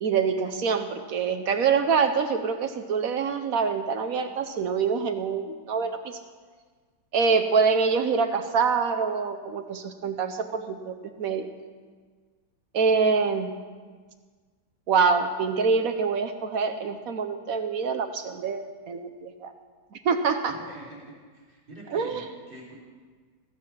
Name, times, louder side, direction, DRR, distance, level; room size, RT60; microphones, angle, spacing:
voice 1, 0.0-6.2 7.1-11.5 12.7-13.5 14.9-19.5 19.9-20.5 21.9-22.2, right 5 dB, 65° right, 7 dB, 1.0 m, -25 dB
voice 2, 20.5-22.7, right 1 dB, 30° right, -7 dB, 4.6 m, -45 dB
15.0 x 7.5 x 6.1 m, 1.5 s
omnidirectional pair, 1.9 m